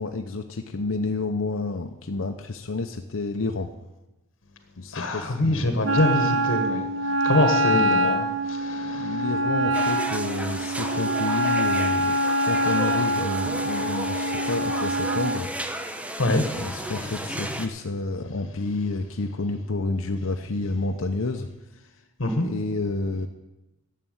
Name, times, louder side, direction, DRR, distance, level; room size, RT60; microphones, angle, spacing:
voice 1, 0.0-3.7 4.8-5.8 8.8-12.2 12.5-15.5 16.2-21.5 21.7-21.9 22.3-23.3, left 3 dB, 90° left, 5 dB, 0.8 m, -30 dB
voice 2, 4.9-9.2 16.2-17.1 17.4-17.5 22.2-22.5, left 1 dB, 70° left, 6 dB, 1.5 m, -25 dB
Wind instrument woodwind instrument, 5.8-15.4, right 1 dB, 70° right, 0.9 m, -25 dB
sound 1, 9.7-17.7, right 1 dB, 5° right, 0.9 m, -34 dB
11.0 x 7.6 x 9.2 m, 1.0 s
head